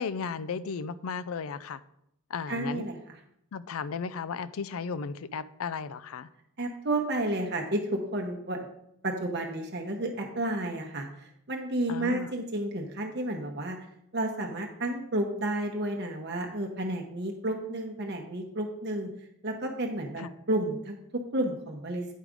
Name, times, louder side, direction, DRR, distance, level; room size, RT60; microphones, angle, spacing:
voice 1, 0.0-1.8 2.3-2.9 3.5-6.3 11.9-12.3 20.2-20.3, left 5 dB, 70° left, 0.4 m, -35 dB
voice 2, 2.5-3.2 6.6-8.6 9.0-13.8 14.1-19.1 19.4-22.1, right 1 dB, 50° right, 0.9 m, -31 dB
9.3 x 4.8 x 5.0 m
head